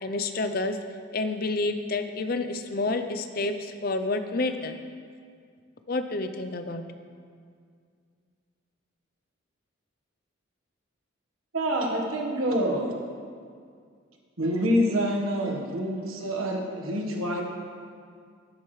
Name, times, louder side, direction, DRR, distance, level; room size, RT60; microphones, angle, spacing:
voice 1, 0.0-0.8 1.1-4.7 5.9-6.8, left 2 dB, 45° left, 8 dB, 0.6 m, -29 dB
voice 2, 11.5-12.9 14.4-17.4, equal, 85° right, 1 dB, 1.4 m, -26 dB
12.0 x 10.5 x 3.2 m, 2.2 s
head